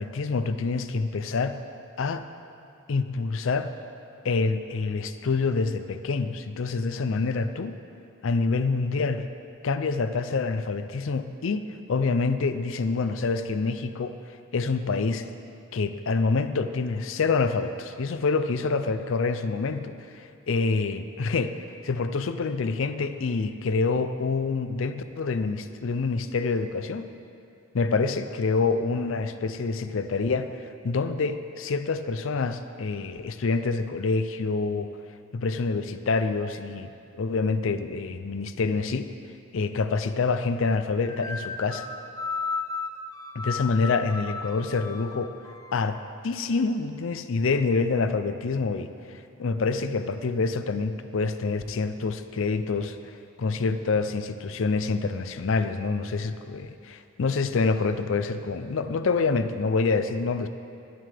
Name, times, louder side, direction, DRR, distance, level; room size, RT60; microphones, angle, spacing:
voice 1, 0.0-1.6 2.0-2.3 2.9-3.7 4.2-7.7 8.2-9.3 9.6-14.2 14.5-15.3 15.7-21.6 21.8-27.1 27.7-34.9 35.3-36.9 37.2-39.1 39.5-41.9 43.3-45.3 45.7-53.0 53.4-60.5, left 4 dB, 65° left, 10 dB, 0.5 m, -27 dB
sound 1, 41.0-46.1, left 4 dB, 15° left, 0.5 m, -35 dB
20.5 x 7.6 x 3.4 m, 2.5 s
head